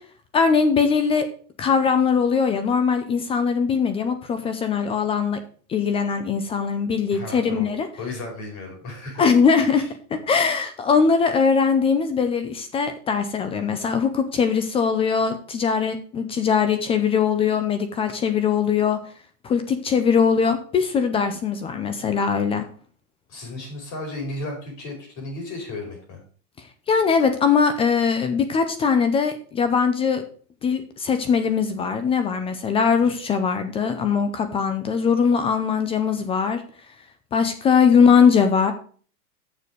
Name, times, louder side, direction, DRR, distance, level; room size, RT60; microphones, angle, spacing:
voice 1, 0.3-1.3 1.6-5.4 5.7-7.9 9.2-9.8 10.1-19.0 19.4-22.6 26.9-30.2 30.6-36.6 37.3-38.7, left 6 dB, 15° left, 9 dB, 0.4 m, -21 dB
voice 2, 7.1-7.7 8.0-9.2 9.7-9.9 23.3-26.2, left 2 dB, 40° left, 0 dB, 5.1 m, -34 dB
7.0 x 6.8 x 6.1 m, 0.44 s
supercardioid pair, 140°, 46 cm